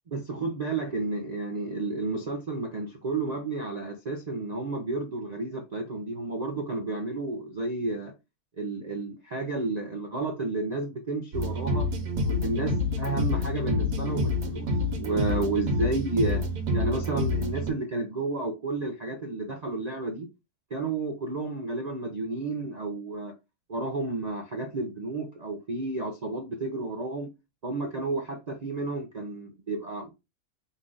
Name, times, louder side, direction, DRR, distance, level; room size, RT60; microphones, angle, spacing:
voice 1, 0.1-8.1 8.6-11.9 12.2-14.7 15.0-16.4 16.7-20.3 20.7-23.3 23.7-27.3 27.6-30.1, right 3 dB, 60° right, 0.4 m, -31 dB
sound 1, 11.3-17.7, left 2 dB, 90° right, 1.5 m, -28 dB
5.3 x 2.5 x 3.8 m
omnidirectional pair, 1.6 m